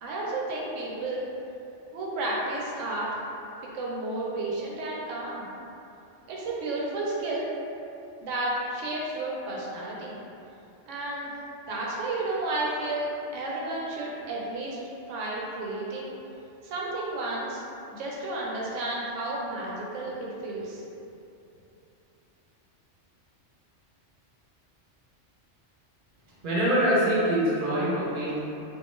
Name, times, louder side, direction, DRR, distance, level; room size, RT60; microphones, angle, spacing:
voice 1, 0.0-1.3 1.9-3.1 3.7-5.5 6.3-7.5 8.2-10.1 10.9-11.3 11.7-14.8 15.1-16.1 16.6-17.6 17.9-20.8, right 2 dB, 80° right, -4 dB, 0.9 m, -32 dB
voice 2, 26.4-28.4, right 1 dB, 55° right, -7 dB, 0.7 m, -24 dB
2.3 x 2.2 x 3.0 m, 2.8 s
omnidirectional pair, 1.2 m